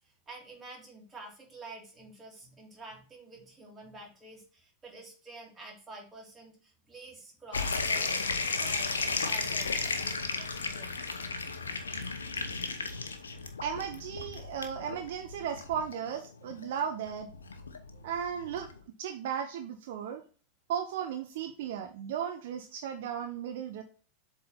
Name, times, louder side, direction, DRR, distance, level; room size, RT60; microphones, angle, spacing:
voice 1, 0.0-11.1, right 2 dB, 15° right, -2 dB, 2.8 m, -49 dB
sound 1, 7.5-18.8, left 4 dB, 70° left, 0.8 m, -34 dB
voice 2, 13.6-17.3 18.0-18.7 19.0-20.2 20.7-23.8, right 8 dB, 55° right, 6 dB, 0.6 m, -35 dB
7.5 x 3.7 x 4.1 m, 0.40 s
figure-of-eight pair, 90°, 0 cm